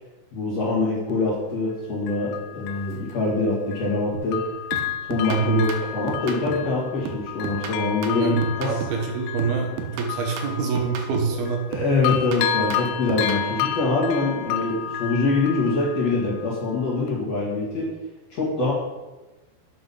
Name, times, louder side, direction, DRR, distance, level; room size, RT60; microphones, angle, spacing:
voice 1, 0.3-4.4 5.1-5.7 5.9-8.7 11.7-17.9 18.3-18.7, left 3 dB, 45° left, -5 dB, 2.7 m, -24 dB
Bell, 1.1-1.2 2.1-4.0 4.3-11.7 12.0-16.7 17.1-17.2, left 9 dB, 90° left, 2.7 m, -31 dB
sound 1, 4.1-4.4 4.7-6.7 7.0-9.1 9.4-11.4 11.7-13.5, right 6 dB, 90° right, 3.0 m, -35 dB
voice 2, 5.3-5.6 8.1-11.6, right 4 dB, 75° right, 2 dB, 3.1 m, -25 dB
8.1 x 6.4 x 5.6 m, 1.1 s
omnidirectional pair, 4.7 m